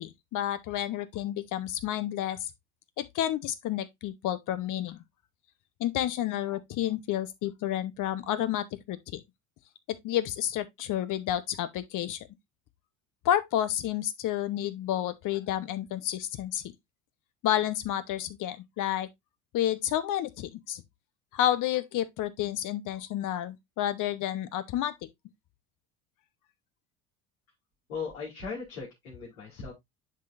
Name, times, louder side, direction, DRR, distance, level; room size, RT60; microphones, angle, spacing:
voice 1, 0.0-2.5 3.0-5.0 5.8-9.2 9.9-12.3 13.2-16.6 17.4-19.1 19.5-20.8 21.3-25.1, left 12 dB, 50° left, 1.0 m, -30 dB
voice 2, 27.9-29.7, left 5 dB, 75° left, 2.9 m, -38 dB
11.0 x 3.9 x 2.5 m
hypercardioid pair, 70°, 41 cm